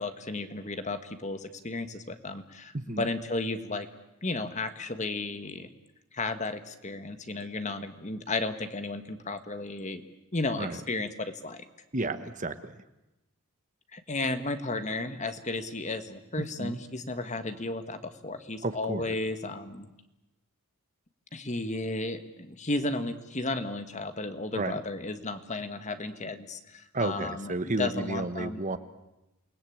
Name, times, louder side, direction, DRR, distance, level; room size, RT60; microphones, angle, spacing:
voice 1, 0.0-3.9 4.2-5.7 6.1-10.0 10.3-11.6 13.9-19.9 21.3-27.5 27.8-28.6, left 2 dB, 30° left, 9 dB, 1.5 m, -34 dB
voice 2, 2.7-3.1 10.6-10.8 11.9-12.7 16.6-16.8 18.6-19.1 24.5-24.8 26.9-28.8, right 2 dB, 35° right, 11 dB, 1.2 m, -32 dB
28.5 x 20.0 x 8.7 m, 0.95 s
head